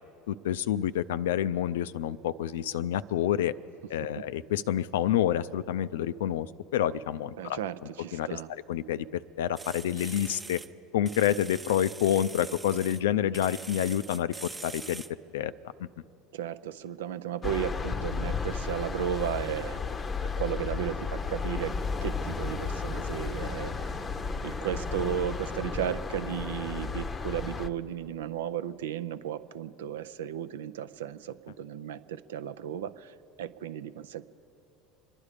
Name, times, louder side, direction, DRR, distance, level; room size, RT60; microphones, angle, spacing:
voice 1, 0.3-3.6 3.9-6.5 6.7-10.6 10.9-15.0 15.3-15.5 15.8-15.9, left 11 dB, 75° left, 15 dB, 0.4 m, -28 dB
voice 2, 7.4-8.5 16.3-19.8 20.2-21.8 22.0-23.9 24.4-34.2, right 9 dB, 75° right, 14 dB, 0.5 m, -34 dB
sound 1, 9.6-10.7 11.1-13.0 13.3-15.1, right 3 dB, 15° right, 0.7 m, -43 dB
sound 2, 17.4-27.7, left 5 dB, 25° left, 0.7 m, -33 dB
25.5 x 11.0 x 5.0 m, 2.9 s
hypercardioid pair, 75°, 0 cm